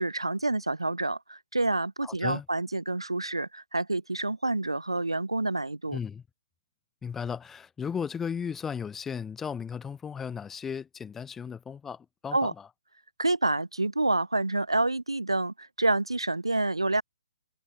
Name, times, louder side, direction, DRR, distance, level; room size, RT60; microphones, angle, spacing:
voice 1, 0.0-6.0 12.3-12.5 13.2-17.0, right 2 dB, 80° right, 6.6 m, -28 dB
voice 2, 2.0-2.4 5.9-6.2 7.0-12.7, left 6 dB, 10° left, 6.1 m, -35 dB
figure-of-eight pair, 130°, 3 cm